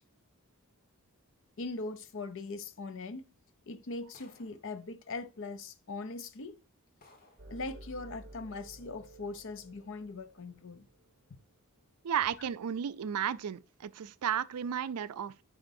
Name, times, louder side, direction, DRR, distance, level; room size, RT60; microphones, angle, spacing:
voice 1, 1.6-3.3 3.7-6.6 7.5-10.9, left 3 dB, 60° left, 0.6 m, -41 dB
sound 1, 4.1-4.7 5.7-5.8 6.4-6.5 7.0-7.5, left 2 dB, 40° left, 1.6 m, -61 dB
sound 2, 7.4-11.4, right 1 dB, 45° right, 1.0 m, -53 dB
voice 2, 12.0-15.4, right 8 dB, 85° right, 0.4 m, -33 dB
9.2 x 5.1 x 2.7 m
head